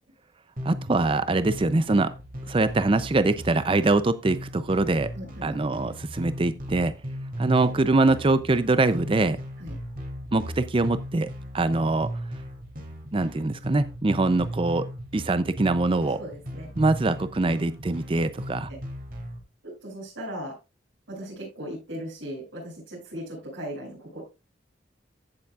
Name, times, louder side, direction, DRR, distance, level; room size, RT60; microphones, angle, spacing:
voice 1, 0.6-2.1 2.5-5.1 5.4-6.9 7.4-9.4 10.3-11.3 11.5-12.1 13.1-14.9 15.1-16.2 16.8-18.7, right 2 dB, 30° right, 13 dB, 0.5 m, -23 dB
sound 1, 0.6-19.4, equal, 50° right, 2.5 m, -37 dB
voice 2, 5.1-5.6 7.6-7.7 9.6-9.7 16.0-16.7 19.8-20.5 21.1-24.3, equal, 85° right, -9 dB, 7.0 m, -38 dB
15.5 x 7.1 x 2.4 m, 0.27 s
head